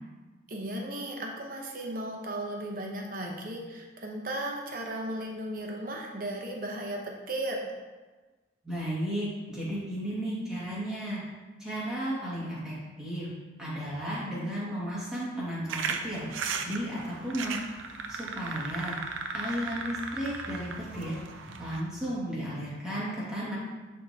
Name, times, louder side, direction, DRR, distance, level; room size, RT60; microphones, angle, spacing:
voice 1, 0.5-7.7, right 1 dB, 45° right, 0 dB, 0.9 m, -35 dB
voice 2, 8.6-11.2 11.6-13.3 13.6-16.3 16.7-17.6 18.1-19.0 19.3-21.2 21.6-23.6, equal, 5° right, -9 dB, 2.0 m, -34 dB
sound 1, 15.7-21.8, right 5 dB, 85° right, 0.5 m, -36 dB
10.5 x 3.7 x 2.9 m, 1.3 s
head